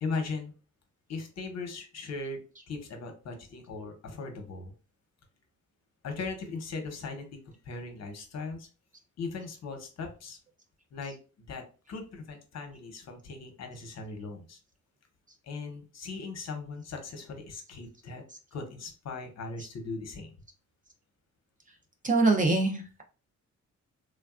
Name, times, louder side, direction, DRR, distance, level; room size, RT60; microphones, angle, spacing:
voice 1, 0.0-0.5 1.1-4.7 6.0-8.7 9.2-10.4 10.9-14.6 15.4-18.2 18.5-20.3, left 4 dB, 60° left, 4 dB, 0.8 m, -39 dB
voice 2, 22.0-23.0, right 3 dB, 25° right, 2 dB, 0.4 m, -25 dB
3.3 x 2.2 x 2.3 m, 0.35 s
cardioid pair, 135°, 30 cm